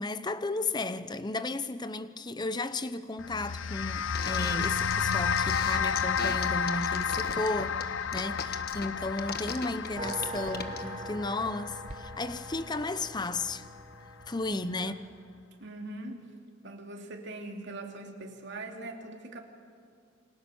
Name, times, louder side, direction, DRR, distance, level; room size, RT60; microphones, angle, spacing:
voice 1, 0.0-13.7 14.3-14.9, left 2 dB, 20° left, 0.8 m, -34 dB
sound 1, 3.2-13.7, left 6 dB, 75° left, 0.7 m, -32 dB
sound 2, 4.2-10.8, left 6 dB, 50° left, 1.4 m, -37 dB
sound 3, 10.0-15.0, right 2 dB, 35° right, 1.5 m, -43 dB
voice 2, 14.5-15.1 15.6-16.3 16.6-19.4, right 2 dB, 65° right, 2.9 m, -42 dB
29.0 x 25.5 x 7.1 m
head